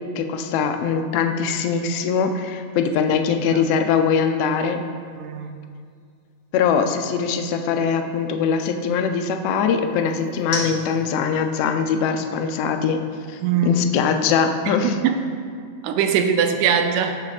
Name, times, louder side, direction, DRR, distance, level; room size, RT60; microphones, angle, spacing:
voice 1, 0.2-4.8 6.5-13.0 13.3-15.0, left 6 dB, 80° left, 5 dB, 1.4 m, -22 dB
sound 1, 0.7-14.9, left 2 dB, 45° left, 2.4 m, -43 dB
voice 2, 5.2-5.5 13.4-13.9 14.6-15.2 15.8-17.2, right 6 dB, 90° right, 6 dB, 2.0 m, -21 dB
15.5 x 6.4 x 2.5 m, 2.2 s
omnidirectional pair, 3.3 m